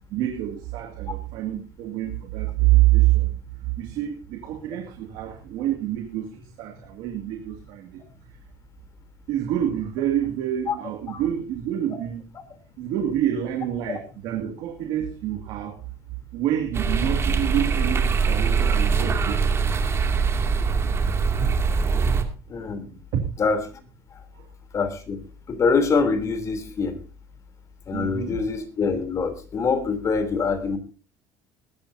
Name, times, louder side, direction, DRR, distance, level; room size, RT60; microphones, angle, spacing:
voice 1, 0.1-8.0 8.3-8.4 9.3-12.2 12.8-15.8 16.3-19.6 21.4-21.6 22.0-22.2 24.3-24.5 27.9-28.4, right 13 dB, 75° right, 3 dB, 2.3 m, -26 dB
sound 1, 16.7-22.2, right 5 dB, 30° right, 2.5 m, -22 dB
voice 2, 22.5-23.0 23.4-23.6 24.1-24.2 24.7-25.2 25.5-27.0 27.9-30.8, left 5 dB, 40° left, 7 dB, 3.4 m, -24 dB
21.0 x 12.5 x 2.8 m, 0.34 s
supercardioid pair, 105°, 8 cm